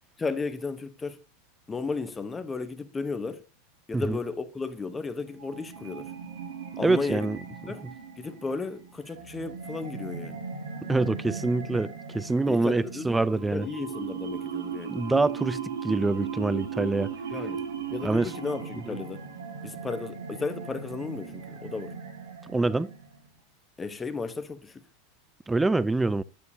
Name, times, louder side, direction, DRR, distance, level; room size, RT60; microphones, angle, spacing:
voice 1, 0.2-1.2 1.7-3.4 3.9-6.1 6.8-7.3 7.7-7.8 8.2-10.4 12.5-13.2 13.5-15.0 17.3-17.6 17.9-19.2 19.6-21.9 23.8-24.7, left 4 dB, 15° left, 1.0 m, -34 dB
sound 1, 5.4-23.3, right 6 dB, 70° right, 1.7 m, -38 dB
voice 2, 6.8-7.4 10.9-13.7 14.9-17.1 18.0-18.3 18.8-19.0 22.5-22.9 25.5-26.2, right 3 dB, 10° right, 0.4 m, -25 dB
9.3 x 7.4 x 2.8 m
figure-of-eight pair, 85°, 0 cm